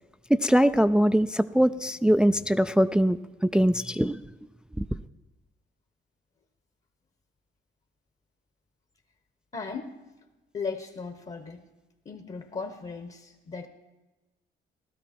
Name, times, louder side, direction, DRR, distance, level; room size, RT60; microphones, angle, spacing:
voice 1, 0.3-4.2 4.8-4.9, equal, 5° right, 0.3 m, -22 dB
voice 2, 9.5-10.0 10.5-11.6 12.0-13.7, left 4 dB, 35° left, 1.1 m, -36 dB
17.0 x 12.5 x 4.4 m
cardioid pair, 90°, 20 cm